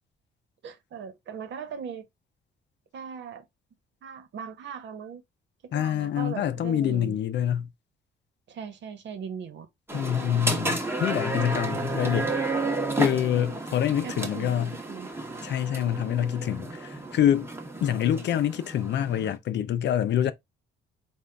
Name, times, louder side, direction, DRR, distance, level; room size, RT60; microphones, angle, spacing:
voice 1, 0.6-2.1 2.9-3.4 4.0-5.2 5.6-7.2 8.5-9.7 14.0-14.6 14.9-15.1 17.9-18.0, right 7 dB, 65° right, 1.1 m, -39 dB
voice 2, 5.7-7.7 9.9-12.3 12.9-14.7 15.4-17.5 17.8-20.3, left 10 dB, 65° left, 0.5 m, -26 dB
sound 1, 9.9-19.4, right 2 dB, 10° right, 1.0 m, -32 dB
3.8 x 2.4 x 3.3 m
cardioid pair, 90°, 20 cm